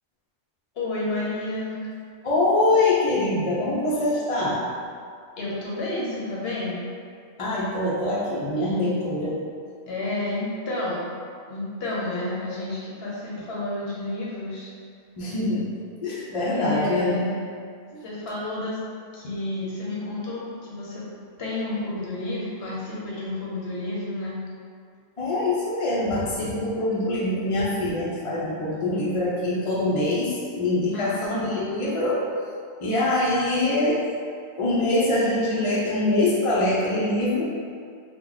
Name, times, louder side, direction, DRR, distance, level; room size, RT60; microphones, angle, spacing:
voice 1, 0.8-1.8 5.4-6.8 9.9-11.1 11.5-14.7 16.5-17.4 18.0-18.8 19.1-21.1 21.4-24.4 30.9-31.5, left 2 dB, 55° left, -6 dB, 0.9 m, -30 dB
voice 2, 2.2-4.6 7.4-9.4 15.2-15.7 16.0-17.2 25.2-32.2 32.8-34.0 34.6-37.4, left 2 dB, 40° left, -7 dB, 0.5 m, -24 dB
3.0 x 2.2 x 3.8 m, 2.2 s
omnidirectional pair, 1.3 m